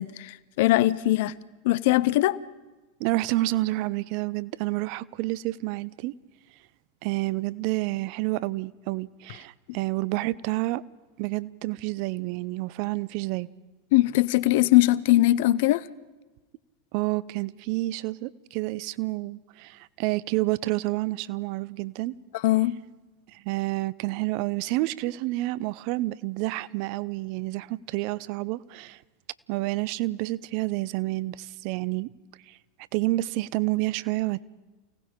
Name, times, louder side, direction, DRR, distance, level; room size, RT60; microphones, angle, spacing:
voice 1, 0.0-1.3 1.6-2.4 13.9-15.8 22.4-22.8, left 17 dB, 60° left, 0.7 m, -21 dB
voice 2, 3.0-6.1 7.0-10.8 11.2-13.5 16.9-22.1 23.3-29.0 29.5-32.1 32.5-32.6 32.9-34.4, right 19 dB, 55° right, 0.6 m, -29 dB
29.0 x 18.0 x 5.2 m
figure-of-eight pair, 85°, 0 cm